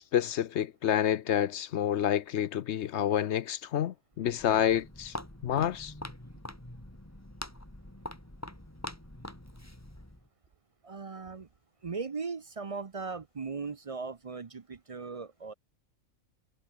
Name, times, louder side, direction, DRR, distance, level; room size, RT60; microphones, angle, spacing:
voice 1, 0.0-5.1 5.4-5.9, left 10 dB, 60° left, 0.9 m, -28 dB
Walk footsteps, 4.1-10.3, left 1 dB, 10° left, 3.0 m, -44 dB
voice 2, 10.8-11.5 11.8-15.5, right 4 dB, 35° right, 0.5 m, -38 dB
omnidirectional pair, 1.4 m